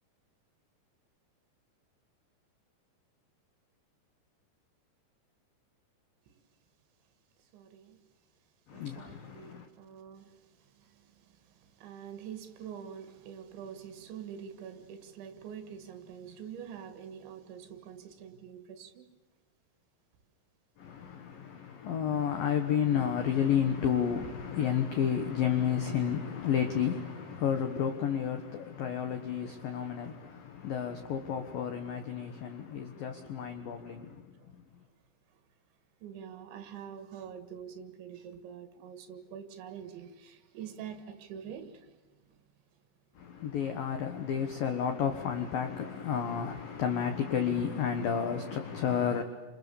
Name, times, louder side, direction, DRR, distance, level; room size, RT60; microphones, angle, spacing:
voice 1, 7.5-8.0 8.7-10.3 11.8-19.0 36.0-41.7, right 8 dB, 70° right, 3.8 m, -45 dB
voice 2, 8.7-9.7 20.8-34.2 43.2-49.2, left 8 dB, 80° left, 2.1 m, -31 dB
29.5 x 27.0 x 7.0 m
omnidirectional pair, 5.9 m